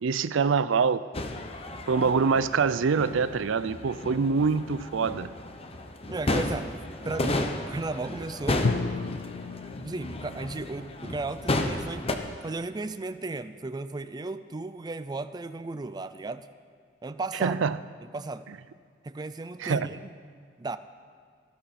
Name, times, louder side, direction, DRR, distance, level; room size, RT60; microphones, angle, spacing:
voice 1, 0.0-1.0 1.9-5.3 17.4-17.8 19.6-19.9, right 5 dB, 85° right, 15 dB, 0.5 m, -25 dB
sound 1, 1.1-12.2, left 2 dB, 30° left, 0.9 m, -33 dB
voice 2, 6.1-6.8 7.0-8.7 9.8-12.1 12.4-16.5 17.0-17.6 18.0-18.5 19.0-20.1 20.6-20.8, right 3 dB, 20° right, 11 dB, 0.4 m, -35 dB
Drum, 8.6-12.4, left 4 dB, 80° left, 0.5 m, -35 dB
19.0 x 12.5 x 4.2 m, 2.1 s
head